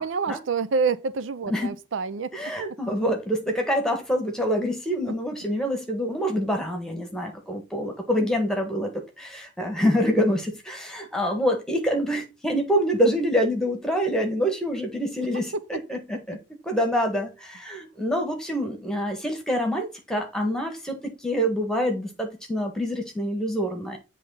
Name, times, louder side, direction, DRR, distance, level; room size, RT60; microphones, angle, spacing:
voice 1, 0.0-2.5 15.7-15.8, right 5 dB, 70° right, 0.5 m, -27 dB
voice 2, 2.3-16.4 16.6-24.0, equal, 5° left, 1.4 m, -26 dB
7.7 x 3.3 x 5.6 m
head